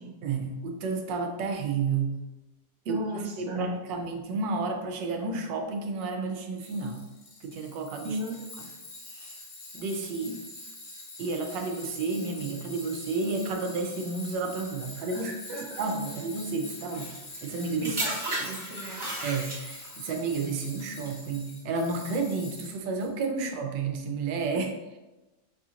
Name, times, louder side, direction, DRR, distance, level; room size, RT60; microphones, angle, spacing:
voice 1, 0.2-2.2 2.9-7.0 7.4-8.2 9.1-9.4 9.7-10.4 11.2-15.3 15.8-18.0 19.2-24.7, right 4 dB, 85° right, 4 dB, 1.3 m, -31 dB
voice 2, 2.8-3.7 8.0-8.4 15.1-15.8 17.8-19.1 23.4-23.5, right 1 dB, 55° right, -1 dB, 0.9 m, -36 dB
Tools, 6.6-23.1, left 2 dB, 55° left, 1.3 m, -45 dB
sound 1, 16.9-20.0 20.8-21.1, right 1 dB, 30° right, 0.5 m, -34 dB
5.5 x 2.8 x 2.4 m, 1.0 s
omnidirectional pair, 1.9 m